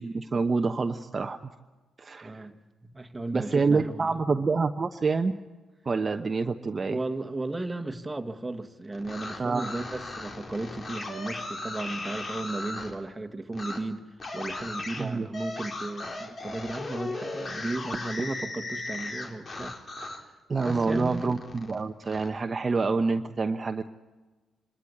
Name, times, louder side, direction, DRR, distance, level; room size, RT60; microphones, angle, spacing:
voice 1, 0.0-1.4 2.0-2.5 3.3-5.3 5.8-7.0 9.4-9.7 15.0-15.3 20.5-23.8, right 4 dB, 40° right, 1.0 m, -27 dB
voice 2, 2.2-2.6 2.8-4.2 6.9-14.0 14.3-19.7 20.6-21.3, right 2 dB, 20° right, 1.8 m, -35 dB
sound 1, 8.9-12.9 13.5-13.8 14.2-20.2 20.6-22.3, left 2 dB, 50° left, 3.9 m, -37 dB
26.0 x 13.0 x 9.7 m
supercardioid pair, 55°, 0 cm